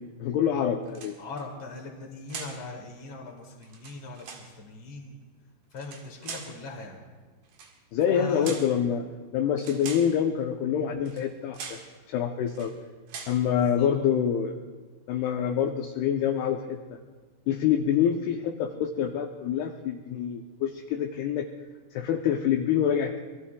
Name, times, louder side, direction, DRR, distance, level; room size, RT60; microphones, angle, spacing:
voice 1, 0.2-1.2 7.9-9.0 9.3-11.8 12.1-12.7 13.3-14.5 15.1-17.0 17.5-21.5 21.9-23.2, left 8 dB, 75° left, 3 dB, 2.5 m, -26 dB
sound 1, 0.9-1.4 2.3-2.6 3.6-4.5 5.7-6.6 7.5-7.8 8.4-8.8 9.6-10.2 11.0-11.3 11.5-11.9 12.5-12.7 13.1-13.4, right 5 dB, 60° right, 3.1 m, -41 dB
voice 2, 1.2-5.2 5.7-7.0 8.1-8.6 13.5-13.9, left 3 dB, 35° left, 0 dB, 2.7 m, -40 dB
27.0 x 22.5 x 2.3 m, 1.4 s
omnidirectional pair, 5.0 m